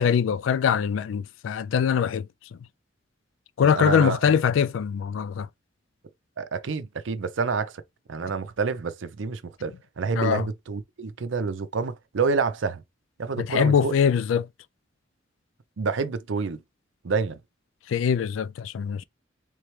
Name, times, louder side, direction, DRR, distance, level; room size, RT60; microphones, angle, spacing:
voice 1, 0.0-2.3 3.6-5.5 10.2-10.5 13.4-14.5 17.9-19.0, left 7 dB, 80° left, 0.3 m, -23 dB
voice 2, 3.6-4.3 6.4-7.8 8.1-12.8 13.2-13.9 15.8-16.6 17.0-17.4, right 4 dB, 70° right, 0.5 m, -28 dB
3.4 x 3.2 x 3.1 m
head